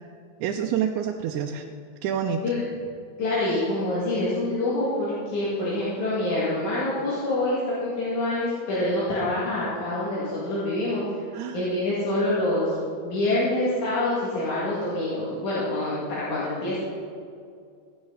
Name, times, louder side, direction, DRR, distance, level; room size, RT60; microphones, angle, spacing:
voice 1, 0.4-1.7 2.0-2.4 11.3-11.7, right 8 dB, 85° right, 4 dB, 2.0 m, -27 dB
voice 2, 3.2-11.0 11.5-12.8 13.0-16.8, left 1 dB, 70° left, -8 dB, 3.5 m, -26 dB
15.5 x 9.3 x 4.0 m, 2.3 s
omnidirectional pair, 3.5 m